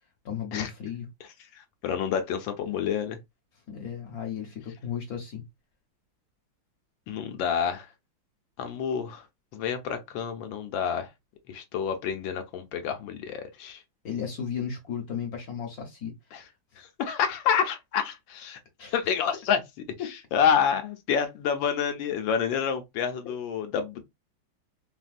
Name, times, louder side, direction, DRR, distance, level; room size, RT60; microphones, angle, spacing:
voice 1, 0.2-1.1 3.7-5.4 14.0-16.1 18.8-19.0 20.0-20.1 23.2-23.3, left 8 dB, 60° left, 1.1 m, -34 dB
voice 2, 1.2-3.2 7.1-7.9 8.6-9.3 9.5-11.1 11.5-13.8 16.3-16.5 16.8-18.6 18.9-19.6 20.0-24.0, left 7 dB, 75° left, 1.3 m, -28 dB
4.0 x 2.1 x 2.5 m
omnidirectional pair, 2.2 m